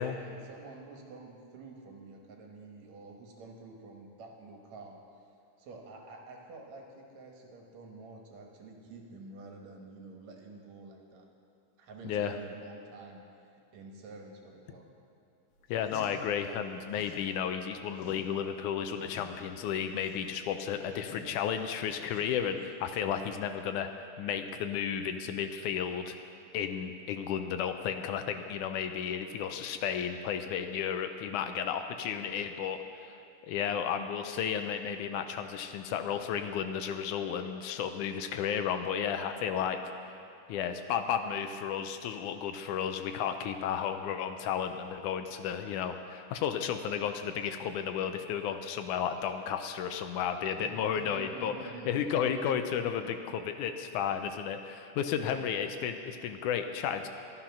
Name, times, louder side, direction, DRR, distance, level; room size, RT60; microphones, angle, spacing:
voice 1, 0.0-5.0 5.6-11.3 11.8-13.2 13.7-14.9 50.6-52.4 53.0-53.4 55.1-55.6, right 3 dB, 65° right, 1 dB, 2.4 m, -48 dB
voice 2, 12.0-12.3 15.7-23.9 24.2-26.2 26.5-33.2 33.5-39.8 40.5-51.5 51.9-57.1, left 8 dB, 80° left, 7 dB, 2.1 m, -33 dB
sound 1, 15.6-17.3 17.6-22.6, left 4 dB, 55° left, 2.3 m, -51 dB
13.0 x 11.5 x 6.0 m, 2.6 s
omnidirectional pair, 3.6 m